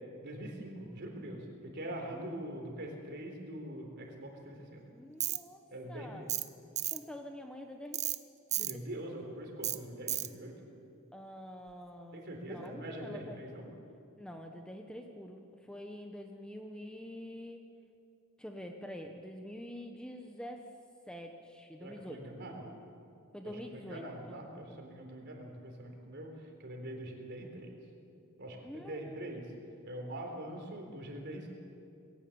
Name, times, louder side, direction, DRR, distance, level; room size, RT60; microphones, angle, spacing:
voice 1, 0.2-4.8 5.7-6.3 8.5-10.6 12.1-13.7 21.8-22.8 23.4-27.7 28.4-29.5 29.9-31.5, right 1 dB, 50° right, 2 dB, 3.9 m, -43 dB
voice 2, 4.9-5.6 5.9-6.3 6.9-8.0 8.6-8.9 11.1-13.7 14.2-17.6 18.4-20.6 21.1-22.2 23.3-24.4 24.7-24.8 28.6-29.2, equal, 5° left, 3 dB, 1.0 m, -46 dB
Tools, 5.2-5.4 6.3-6.5 6.8-7.0 7.9-8.2 8.5-8.7 9.6-9.8 10.1-10.3, right 12 dB, 30° right, 0.6 m, -33 dB
21.0 x 17.5 x 8.6 m, 2.5 s
head